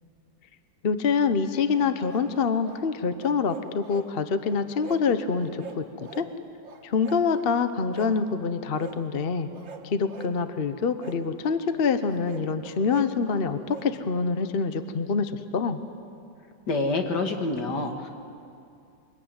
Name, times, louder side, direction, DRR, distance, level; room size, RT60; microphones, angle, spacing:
voice 1, 0.8-6.3 6.8-9.5 9.8-15.8, left 5 dB, 45° left, 10 dB, 0.9 m, -26 dB
sound 1, 1.7-2.8 3.2-4.1 4.4-5.0 5.3-6.3 6.6-7.5 7.9-8.2 8.8-9.0 9.5-10.3 11.0-11.2 12.0-13.9, right 5 dB, 85° right, 2.3 m, -44 dB
voice 2, 16.7-18.1, left 3 dB, 65° left, 5 dB, 2.5 m, -27 dB
24.0 x 21.0 x 9.7 m, 2.5 s
omnidirectional pair, 2.0 m